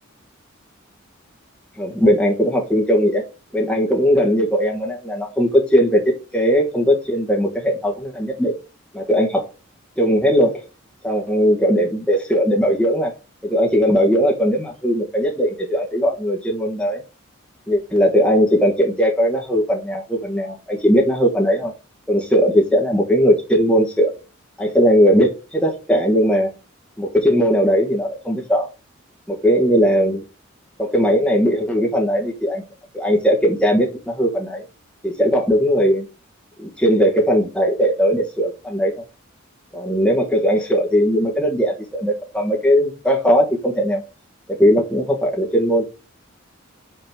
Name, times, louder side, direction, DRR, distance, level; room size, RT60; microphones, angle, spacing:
voice 1, 1.8-3.2 3.5-8.5 8.9-9.4 10.0-10.5 11.0-13.1 13.4-17.0 17.7-21.7 22.1-24.1 24.6-26.5 27.0-28.7 29.3-30.2 30.8-32.6 32.9-34.6 35.0-36.0 36.6-38.9 39.7-44.0 44.5-45.9, equal, 5° left, 1.4 m, -18 dB
5.7 x 4.0 x 5.9 m
head